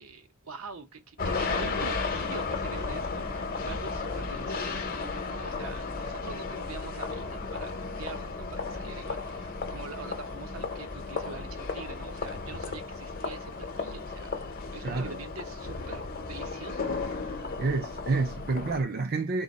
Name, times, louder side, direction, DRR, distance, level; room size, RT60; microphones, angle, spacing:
voice 1, 0.0-17.0, right 4 dB, 75° right, 0.8 m, -45 dB
sound 1, 1.2-18.8, left 4 dB, 45° left, 0.8 m, -34 dB
voice 2, 14.8-15.2 17.6-19.4, right 3 dB, 45° right, 0.5 m, -29 dB
3.9 x 2.4 x 4.0 m
head